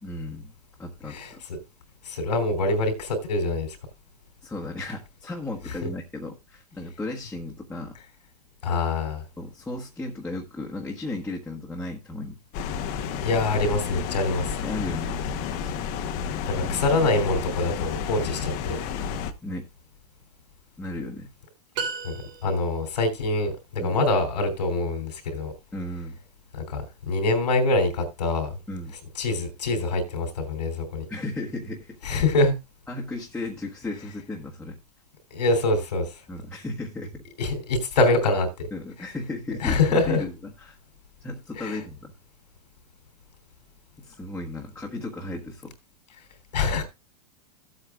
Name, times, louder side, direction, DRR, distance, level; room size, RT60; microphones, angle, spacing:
voice 1, 0.0-1.4 4.4-8.0 9.4-12.4 14.6-15.7 19.4-19.7 20.8-21.3 23.8-24.0 25.7-26.2 28.7-28.9 31.1-32.2 32.9-34.8 36.3-37.2 38.7-40.8 41.2-42.1 44.0-45.7, left 2 dB, 5° left, 1.4 m, -35 dB
voice 2, 2.0-3.8 8.6-9.2 13.2-14.6 16.5-18.8 22.0-22.1 22.4-25.5 26.5-28.6 29.2-31.0 32.0-32.5 35.3-36.1 37.4-38.7 39.6-40.2 41.5-41.8 46.5-46.8, left 2 dB, 90° left, 3.4 m, -25 dB
sound 1, 12.5-19.3, left 7 dB, 45° left, 1.1 m, -31 dB
sound 2, 21.7-22.9, right 5 dB, 50° right, 3.4 m, -33 dB
15.5 x 8.0 x 2.4 m
hypercardioid pair, 125°, 20 cm